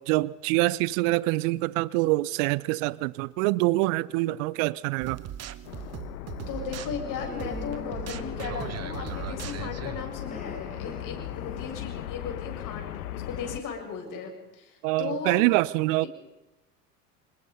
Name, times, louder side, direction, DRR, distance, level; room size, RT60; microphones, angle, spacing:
voice 1, 0.0-5.2 14.8-16.1, right 20 dB, 50° right, 0.8 m, -25 dB
sound 1, 5.0-10.0, right 11 dB, 30° right, 1.3 m, -39 dB
sound 2, 5.6-13.6, left 12 dB, 65° left, 1.6 m, -37 dB
voice 2, 6.5-15.4 16.0-16.1, left 5 dB, 40° left, 7.6 m, -37 dB
Human voice, 6.9-9.2 10.1-11.9, left 1 dB, 15° left, 4.4 m, -44 dB
26.5 x 21.5 x 5.5 m
figure-of-eight pair, 75°, 48 cm